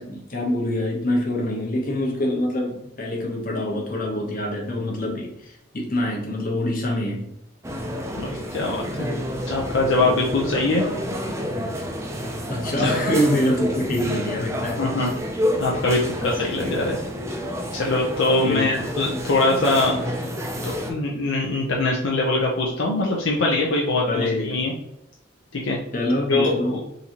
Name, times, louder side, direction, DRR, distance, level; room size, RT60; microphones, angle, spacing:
voice 1, 0.0-7.3 12.5-14.9 18.4-18.9 24.1-24.6 25.9-26.8, left 1 dB, 45° left, -1 dB, 1.0 m, -25 dB
sound 1, 7.6-20.9, equal, 15° right, 0.4 m, -29 dB
voice 2, 8.2-9.1 9.5-10.8 12.8-13.0 14.8-15.1 15.6-17.0 17.7-20.0 20.6-24.7 25.5-25.8 26.3-26.8, left 2 dB, 65° left, -2 dB, 0.6 m, -23 dB
3.8 x 2.8 x 2.9 m, 0.82 s
head